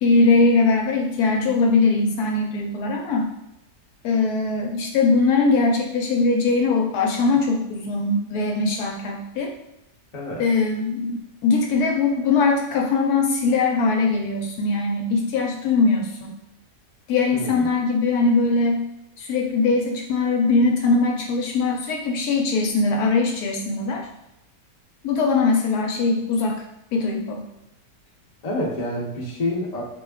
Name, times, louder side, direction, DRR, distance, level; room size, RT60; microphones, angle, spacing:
voice 1, 0.0-3.3 4.0-9.5 10.4-16.4 17.1-18.9 19.2-24.1 25.0-26.6 26.9-27.4, left 3 dB, 75° left, 1 dB, 1.1 m, -21 dB
voice 2, 10.1-10.4 17.3-17.7 28.4-29.8, left 1 dB, 35° left, -3 dB, 0.6 m, -28 dB
4.3 x 2.3 x 3.4 m, 0.89 s
omnidirectional pair, 1.8 m